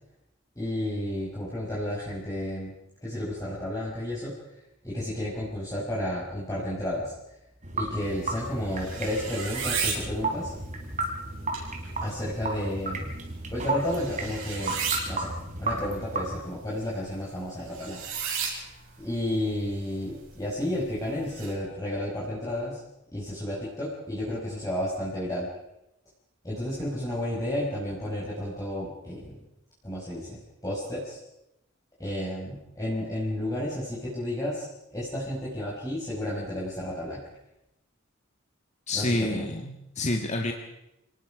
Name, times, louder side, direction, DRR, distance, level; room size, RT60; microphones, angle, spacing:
voice 1, 0.6-4.5 4.8-7.1 7.7-10.5 12.0-13.1 13.5-15.3 15.6-18.0 19.0-22.8 23.1-25.5 26.4-29.4 29.8-31.2 32.0-37.2 38.9-39.4, left 1 dB, 15° left, -7 dB, 5.4 m, -32 dB
sound 1, 7.6-16.4, right 2 dB, 35° right, 3.3 m, -34 dB
sound 2, 8.1-21.5, right 6 dB, 80° right, 6.9 m, -37 dB
voice 2, 38.9-40.5, left 2 dB, 35° left, 2 dB, 1.7 m, -28 dB
29.5 x 19.0 x 5.1 m, 0.87 s
head